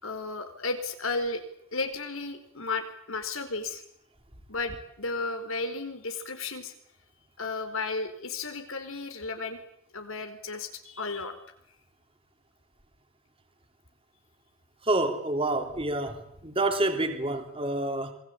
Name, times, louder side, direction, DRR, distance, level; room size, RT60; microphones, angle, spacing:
voice 1, 0.0-1.4 1.7-3.8 4.5-6.7 7.4-9.6 9.9-11.4, left 3 dB, 80° left, 7 dB, 4.5 m, -33 dB
voice 2, 14.8-18.1, right 2 dB, 25° right, 6 dB, 3.0 m, -28 dB
27.0 x 22.5 x 8.7 m, 0.69 s
head